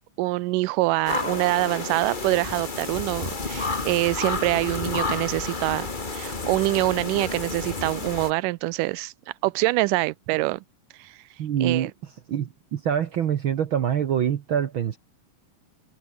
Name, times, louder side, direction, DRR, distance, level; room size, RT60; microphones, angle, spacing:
voice 1, 0.2-5.9 6.1-9.1 9.4-10.6 11.0-11.1 11.6-11.9, right 21 dB, 85° right, 2.2 m, -25 dB
sound 1, 1.0-8.3, left 3 dB, 20° left, 1.3 m, -30 dB
voice 2, 11.4-11.9 12.3-15.0, right 9 dB, 65° right, 1.2 m, -25 dB
omnidirectional pair, 3.7 m